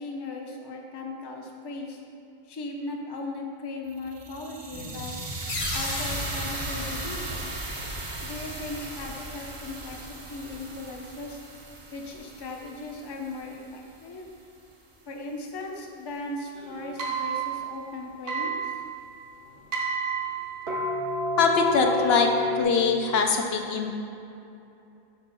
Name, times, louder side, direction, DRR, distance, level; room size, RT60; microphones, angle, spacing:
voice 1, 0.0-2.0 2.4-5.1 5.7-7.5 8.2-11.4 11.9-14.3 15.1-18.7, left 2 dB, 30° left, 1 dB, 0.5 m, -37 dB
sound 1, 3.9-14.0, right 2 dB, 35° right, 0.7 m, -37 dB
sound 2, 5.5-8.1, left 2 dB, 45° left, 0.9 m, -36 dB
sound 3, 16.6-22.6, right 2 dB, 70° right, 1.1 m, -30 dB
voice 2, 21.4-22.3 22.6-23.9, left 5 dB, 75° left, 3 dB, 0.8 m, -22 dB
5.8 x 4.4 x 5.3 m, 2.8 s
omnidirectional pair, 1.1 m